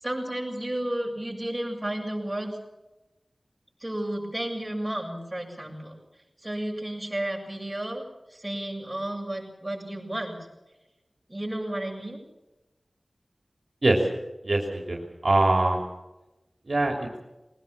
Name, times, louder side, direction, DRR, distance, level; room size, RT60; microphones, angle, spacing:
voice 1, 0.0-2.6 3.8-5.9 6.4-8.0 8.3-10.3 11.3-12.2, right 1 dB, 20° right, 0 dB, 7.3 m, -32 dB
voice 2, 14.4-15.8 16.7-17.2, right 2 dB, 55° right, 2 dB, 3.2 m, -23 dB
21.5 x 19.5 x 7.3 m, 1.0 s
wide cardioid pair, 65°, 0 cm